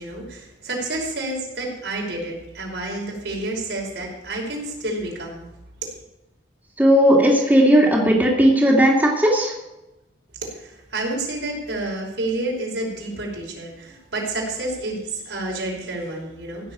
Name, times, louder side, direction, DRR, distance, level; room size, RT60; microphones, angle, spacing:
voice 1, 0.0-5.5 5.8-5.9 10.4-16.7, right 2 dB, 75° right, -2 dB, 5.4 m, -29 dB
voice 2, 6.8-9.5, equal, 10° right, -3 dB, 2.4 m, -16 dB
16.0 x 6.8 x 8.7 m, 0.95 s
head